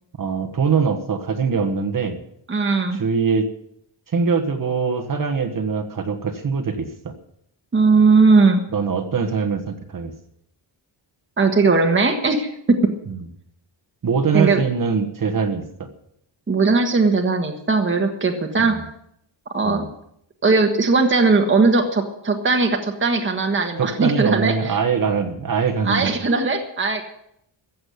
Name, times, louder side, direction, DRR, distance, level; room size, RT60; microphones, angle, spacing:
voice 1, 0.2-2.2 2.9-3.5 4.1-7.1 8.7-10.1 14.0-15.9 18.6-18.8 19.6-19.9 23.8-26.1, right 5 dB, 45° right, 7 dB, 1.4 m, -22 dB
voice 2, 2.5-3.0 7.7-8.6 11.4-12.8 14.3-14.6 16.5-18.7 19.5-19.8 20.4-24.8 25.8-27.0, right 4 dB, 25° right, 3 dB, 1.5 m, -18 dB
15.0 x 7.6 x 9.5 m, 0.73 s
wide cardioid pair, 165°, 46 cm